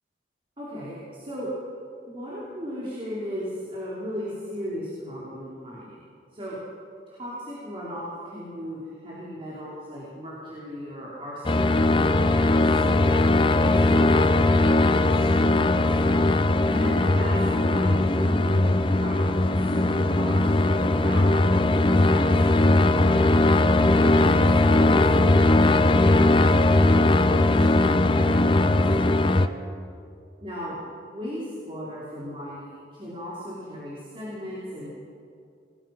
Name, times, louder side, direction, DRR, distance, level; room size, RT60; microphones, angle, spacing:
voice 1, 0.6-1.5 2.1-6.0 6.3-6.6 7.1-13.1 13.6-16.0 16.7-23.2 24.0-29.5 30.4-30.8 31.0-35.0, equal, 30° right, -7 dB, 5.0 m, -37 dB
sound 1, 11.4-29.5, left 2 dB, 30° left, 0.8 m, -19 dB
28.0 x 21.0 x 6.2 m, 2.5 s
head